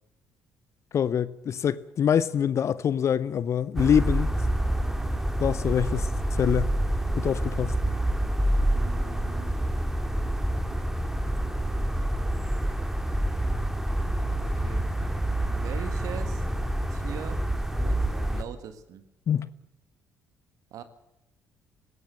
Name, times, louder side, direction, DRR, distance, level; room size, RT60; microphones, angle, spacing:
voice 1, 0.9-4.3 5.4-6.1 6.4-6.7 7.2-7.7 19.3-19.5, left 8 dB, 45° left, 0.7 m, -25 dB
sound 1, 3.8-18.4, right 1 dB, 5° right, 2.3 m, -27 dB
voice 2, 8.6-9.6 14.4-14.8 15.5-16.5 16.9-17.4 17.8-19.0 20.7-20.8, right 8 dB, 55° right, 1.7 m, -41 dB
19.5 x 17.5 x 7.8 m
figure-of-eight pair, 45°, 7 cm